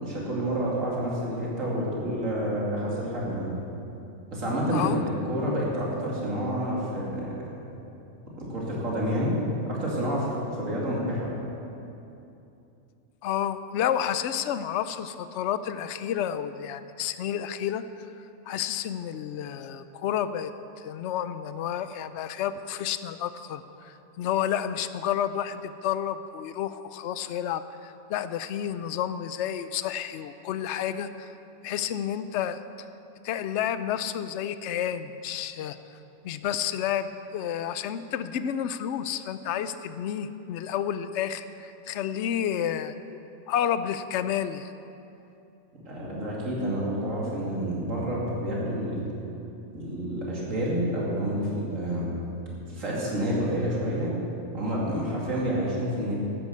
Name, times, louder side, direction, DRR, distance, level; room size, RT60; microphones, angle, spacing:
voice 1, 0.0-3.5 4.3-7.4 8.4-9.4 9.7-11.3 45.8-49.0 49.7-52.1 52.7-54.2 54.5-56.1, equal, 65° right, -5 dB, 3.1 m, -29 dB
voice 2, 13.2-18.1 18.5-20.5 20.8-31.3 31.6-32.6 33.2-35.8 36.2-43.2 43.5-44.7, left 9 dB, 65° left, 12 dB, 0.8 m, -30 dB
12.5 x 9.9 x 6.8 m, 2.8 s
omnidirectional pair, 1.4 m